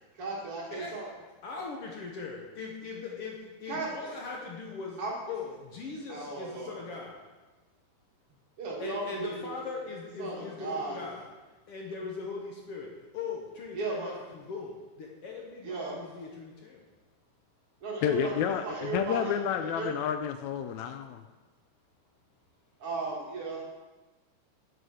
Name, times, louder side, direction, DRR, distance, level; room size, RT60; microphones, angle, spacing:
voice 1, 0.1-1.1 3.7-4.1 5.0-5.2 6.1-6.8 8.6-9.5 10.2-11.0 13.7-14.1 15.6-16.0 17.8-19.9 22.8-23.6, right 3 dB, 50° right, -3 dB, 2.6 m, -36 dB
voice 2, 0.7-1.0 1.4-5.0 5.3-7.3 8.8-11.3 11.7-16.8, left 4 dB, 60° left, -1 dB, 1.7 m, -40 dB
voice 3, 18.0-21.2, left 9 dB, 80° left, 8 dB, 1.8 m, -30 dB
9.8 x 5.4 x 6.3 m, 1.2 s
omnidirectional pair, 3.4 m